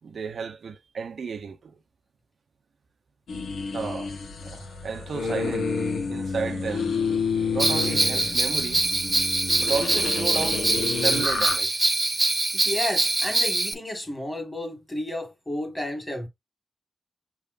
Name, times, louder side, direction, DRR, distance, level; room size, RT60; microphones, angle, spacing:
voice 1, 0.0-1.8 3.7-4.2 4.4-5.7 6.1-6.9 7.5-8.8 9.6-11.8, right 5 dB, 65° right, 0.7 m, -33 dB
sound 1, 3.3-11.6, left 5 dB, 80° left, 1.1 m, -29 dB
Bell, 7.6-13.7, right 2 dB, 20° right, 0.5 m, -24 dB
voice 2, 12.5-16.3, left 1 dB, 15° left, 1.8 m, -32 dB
5.8 x 3.5 x 2.5 m
wide cardioid pair, 125°, 0 cm